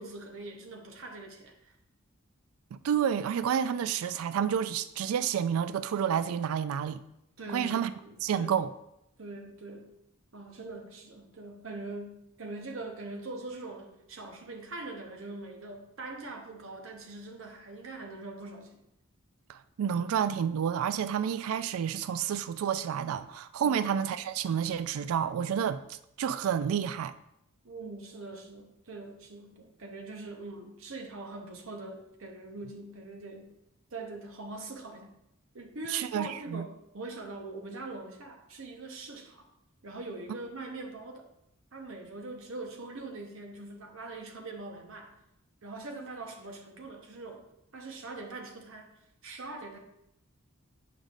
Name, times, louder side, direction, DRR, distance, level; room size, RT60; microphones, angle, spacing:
voice 1, 0.0-1.7 7.4-8.5 9.2-9.9 10.3-18.9 23.6-23.9 27.6-33.5 33.9-35.1 35.5-39.4 39.8-41.3 41.7-45.1 45.6-47.4 47.7-48.9 49.2-49.8, right 2 dB, 70° right, 0.9 m, -42 dB
voice 2, 2.7-7.0 7.5-7.9 8.2-8.7 19.5-25.8 26.2-27.1 35.9-36.7, right 8 dB, 85° right, 0.3 m, -29 dB
7.9 x 5.1 x 2.5 m
head